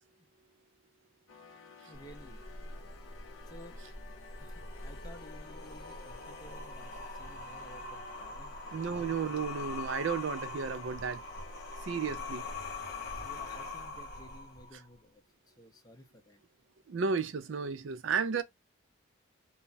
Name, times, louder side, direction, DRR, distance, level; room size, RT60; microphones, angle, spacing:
sound 1, 1.3-13.9, left 5 dB, 80° left, 0.6 m, -54 dB
sound 2, 1.9-14.9, left 2 dB, 50° left, 0.8 m, -43 dB
voice 1, 1.9-2.4 3.5-3.8 4.4-9.1 13.2-16.4, left 1 dB, 20° left, 0.5 m, -54 dB
voice 2, 8.7-11.2 11.8-12.5 16.9-18.4, right 5 dB, 70° right, 0.4 m, -33 dB
2.3 x 2.0 x 3.8 m
head